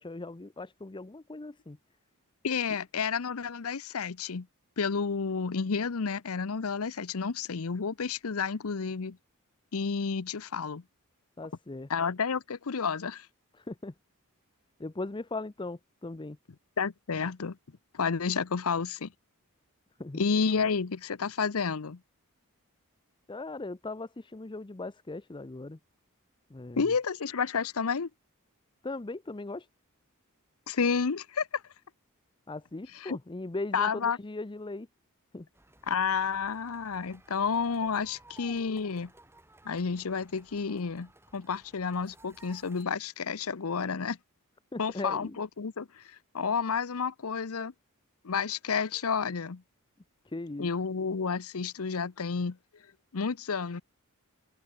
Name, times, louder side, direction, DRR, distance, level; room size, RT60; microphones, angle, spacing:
voice 1, 0.0-1.8 11.4-11.9 13.6-13.9 14.8-16.4 20.0-20.2 23.3-25.8 26.5-26.9 28.8-29.7 32.5-34.9 35.3-35.5 44.7-45.4 50.3-50.7, left 2 dB, 20° left, 0.6 m, -39 dB
voice 2, 2.4-4.5 4.8-9.2 9.7-10.8 11.9-13.3 16.8-17.6 17.9-19.1 20.2-22.0 26.8-28.1 30.7-31.6 32.9-33.2 33.7-34.2 35.9-39.1 39.6-44.2 44.8-47.7 48.2-49.6 50.6-52.6 53.1-53.8, left 5 dB, 70° left, 0.7 m, -30 dB
sound 1, 35.5-42.8, right 2 dB, 10° right, 5.3 m, -57 dB
open air
head